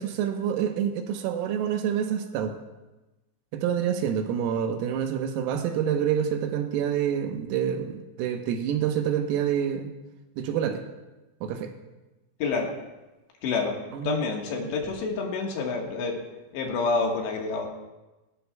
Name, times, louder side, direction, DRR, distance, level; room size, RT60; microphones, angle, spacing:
voice 1, 0.0-2.5 3.5-9.9 10.4-10.8 11.4-11.7 13.9-14.2, right 9 dB, 90° right, 5 dB, 3.8 m, -27 dB
voice 2, 12.4-12.7 13.4-13.8 14.0-16.2 16.5-17.7, left 4 dB, 65° left, 0 dB, 3.4 m, -28 dB
18.5 x 17.5 x 2.3 m, 1.1 s
omnidirectional pair, 5.9 m